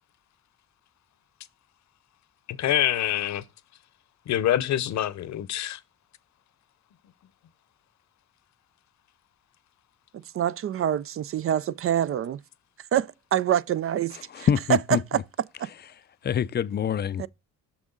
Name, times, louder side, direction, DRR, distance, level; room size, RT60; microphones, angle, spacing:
voice 1, 2.5-3.4 4.3-5.8, left 12 dB, 65° left, 0.8 m, -25 dB
voice 2, 10.3-12.4 12.9-14.5 15.1-15.2 15.6-15.7 17.2-17.3, right 10 dB, 45° right, 0.4 m, -26 dB
voice 3, 14.1-15.2 16.2-17.2, left 8 dB, 35° left, 0.4 m, -26 dB
6.3 x 6.0 x 3.8 m
cardioid pair, 90°, 30 cm